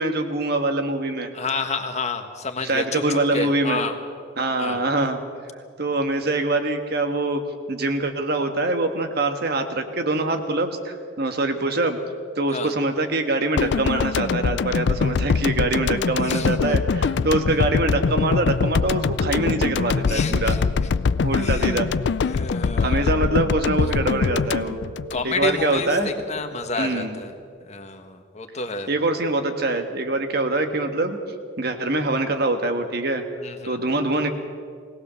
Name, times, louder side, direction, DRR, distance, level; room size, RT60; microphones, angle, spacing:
voice 1, 0.0-1.3 2.6-3.9 4.4-5.2 5.8-12.0 12.3-20.6 21.2-21.9 22.8-24.8 25.2-26.1 26.7-27.1 28.9-31.2 31.6-33.2 33.6-34.3, right 2 dB, 55° right, 6 dB, 1.6 m, -24 dB
voice 2, 1.3-3.9 4.6-4.8 12.5-12.7 16.2-16.6 20.1-20.6 21.4-21.7 22.2-23.1 25.1-27.3 27.6-28.9 33.4-33.8, left 3 dB, 35° left, 6 dB, 1.5 m, -30 dB
sound 1, 13.6-25.8 26.0-26.2, left 5 dB, 60° left, 0.4 m, -23 dB
20.5 x 18.0 x 7.0 m, 2.2 s
head